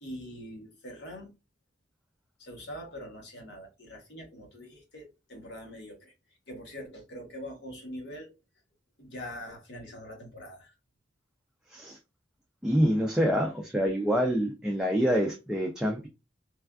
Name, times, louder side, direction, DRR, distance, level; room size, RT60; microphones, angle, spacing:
voice 1, 0.0-1.3 2.4-6.1 6.5-8.3 9.0-10.8, equal, 65° left, 1.0 m, -43 dB
voice 2, 12.6-16.1, equal, 5° right, 0.4 m, -26 dB
3.2 x 2.3 x 2.3 m
head